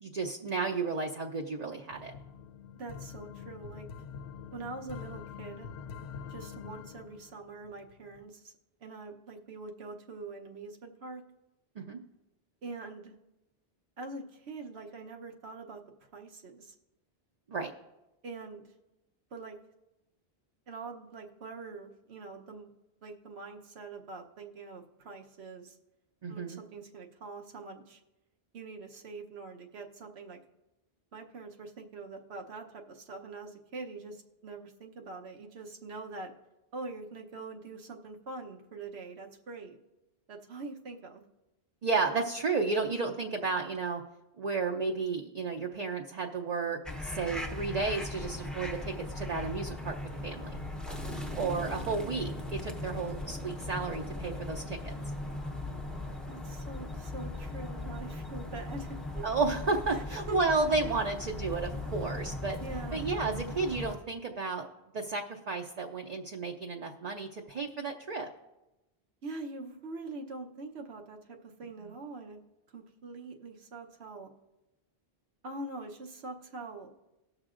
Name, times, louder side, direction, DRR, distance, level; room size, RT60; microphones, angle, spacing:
voice 1, 0.0-2.1 11.8-12.0 17.5-17.7 26.2-26.6 41.8-44.0 44.4-50.0 50.2-50.5 51.4-54.9 59.2-62.6 62.9-64.7 64.9-68.3, right 4 dB, 45° right, 2 dB, 0.6 m, -32 dB
sound 1, 1.9-8.2, left 7 dB, 85° left, 0.8 m, -45 dB
voice 2, 2.8-3.9 4.5-5.7 6.3-8.5 8.8-11.2 12.6-13.1 14.0-15.8 16.1-16.7 18.2-18.6 19.3-19.6 20.7-22.7 23.0-25.8 26.3-28.0 28.5-30.4 31.1-36.3 36.7-39.8 40.3-41.2 56.3-59.2 59.9-60.0 60.3-60.4 60.8-61.0 62.6-63.0 69.2-72.4 72.7-74.3 75.4-76.9, right 3 dB, 85° right, 3 dB, 1.2 m, -44 dB
sound 2, 46.8-64.0, left 2 dB, ahead, 0.6 m, -38 dB
19.0 x 6.4 x 2.5 m, 0.99 s
omnidirectional pair, 1.1 m